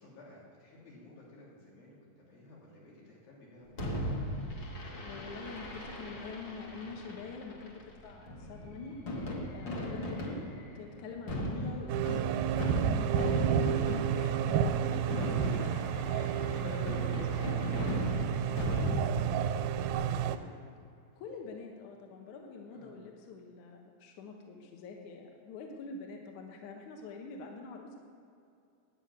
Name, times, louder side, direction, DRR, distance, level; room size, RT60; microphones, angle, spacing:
voice 1, 0.0-2.0 2.3-4.1 11.5-11.8 14.1-20.7 22.7-23.0, left 2 dB, 85° left, -5 dB, 5.0 m, -49 dB
Fireworks, 3.8-19.9, equal, 45° left, 1.6 m, -38 dB
voice 2, 5.0-9.0 9.5-10.4 10.8-13.4 14.1-15.3 15.6-15.9 16.2-16.3 21.2-28.0, left 4 dB, 65° left, 2 dB, 2.3 m, -45 dB
sound 1, 11.9-20.4, right 9 dB, 90° right, 2.4 m, -31 dB
9.7 x 8.4 x 9.2 m, 2.5 s
omnidirectional pair, 4.0 m